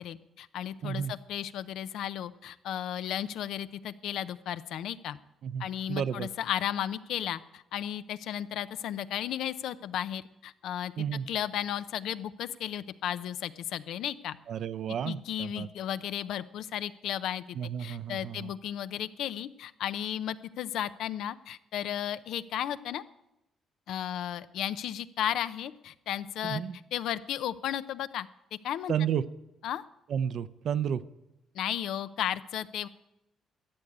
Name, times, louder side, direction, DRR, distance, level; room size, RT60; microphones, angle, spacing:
voice 1, 0.0-5.2 5.6-10.9 11.3-14.4 15.1-23.0 23.9-26.6 26.9-28.9 29.6-29.8 31.5-32.9, left 10 dB, 80° left, 14 dB, 0.5 m, -34 dB
voice 2, 0.8-1.1 5.4-6.3 11.0-11.3 14.5-15.7 17.5-18.5 26.4-26.8 28.9-29.2 30.1-31.0, right 8 dB, 65° right, 15 dB, 0.6 m, -32 dB
13.0 x 8.1 x 8.7 m, 0.91 s
cardioid pair, 90°, 0 cm